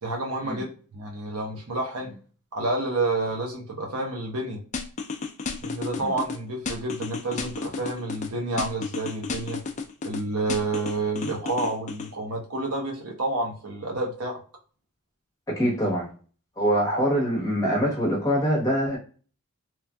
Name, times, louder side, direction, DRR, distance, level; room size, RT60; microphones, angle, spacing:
voice 1, 0.0-2.1 2.5-4.6 5.6-9.6 10.0-14.4, right 2 dB, 80° right, 0 dB, 0.8 m, -29 dB
sound 1, 4.7-6.4 6.7-8.3 8.6-10.2 10.5-12.1, left 5 dB, 35° left, 0.3 m, -32 dB
voice 2, 15.5-16.1 16.6-19.0, equal, 15° left, -4 dB, 1.0 m, -24 dB
3.1 x 2.4 x 2.2 m, 0.40 s
head